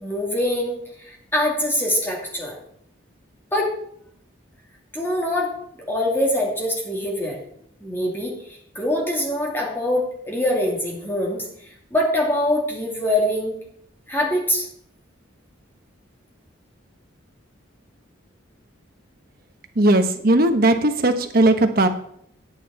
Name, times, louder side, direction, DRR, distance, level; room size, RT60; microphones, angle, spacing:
voice 1, 0.0-2.5 3.5-3.7 4.9-5.5 5.9-7.4 7.8-8.3 8.7-11.4 11.9-13.6 14.1-14.7, left 1 dB, 10° left, -2 dB, 2.3 m, -23 dB
voice 2, 19.8-21.9, right 1 dB, 45° right, 7 dB, 1.0 m, -17 dB
9.5 x 9.2 x 4.2 m, 0.68 s
head